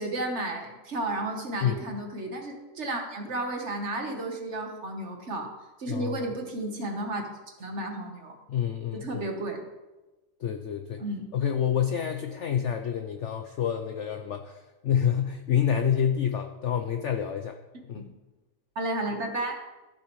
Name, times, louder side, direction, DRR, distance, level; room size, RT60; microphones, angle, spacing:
voice 1, 0.0-5.5 5.8-7.2 7.6-8.4 8.9-9.6 11.0-11.3 17.9-18.1 18.7-19.6, right 2 dB, 45° right, 3 dB, 1.4 m, -32 dB
voice 2, 5.9-6.3 8.5-9.2 10.4-11.0 11.3-17.6 17.9-18.1, left 9 dB, 70° left, 6 dB, 0.7 m, -28 dB
15.0 x 7.0 x 3.1 m, 1.1 s
omnidirectional pair, 1.8 m